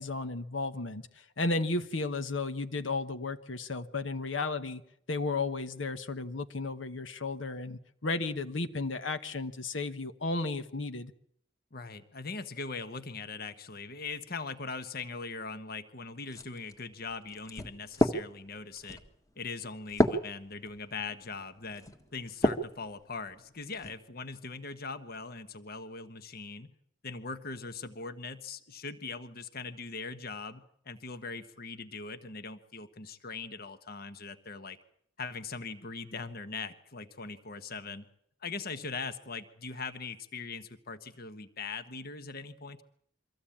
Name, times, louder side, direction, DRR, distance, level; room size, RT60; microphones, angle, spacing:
voice 1, 0.0-4.8 5.1-11.1, left 3 dB, 85° left, 9 dB, 1.3 m, -34 dB
voice 2, 11.7-19.0 19.3-21.8 22.1-26.7 27.0-34.8 35.2-38.1 38.4-42.8, left 4 dB, 55° left, 11 dB, 1.3 m, -41 dB
sound 1, 16.3-22.8 23.3-24.0, equal, 20° left, 1.5 m, -32 dB
24.0 x 15.0 x 8.8 m, 0.70 s
head